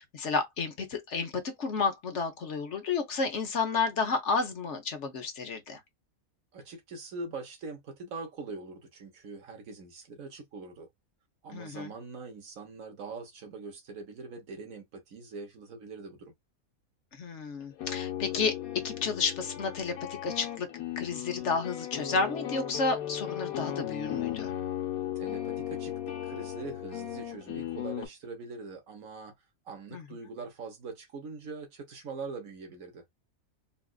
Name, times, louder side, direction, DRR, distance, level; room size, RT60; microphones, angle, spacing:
voice 1, 0.0-1.3 1.6-5.8 11.5-11.9 17.1-18.6 18.8-19.9 20.2-20.7 21.0-24.5 29.9-30.0, left 4 dB, 60° left, 1.2 m, -31 dB
voice 2, 6.5-10.9 11.4-16.3 25.1-29.3 29.6-33.0, right 4 dB, 75° right, 1.5 m, -43 dB
sound 1, 17.6-28.1, left 11 dB, 85° left, 1.3 m, -36 dB
4.1 x 2.4 x 2.3 m
omnidirectional pair, 1.4 m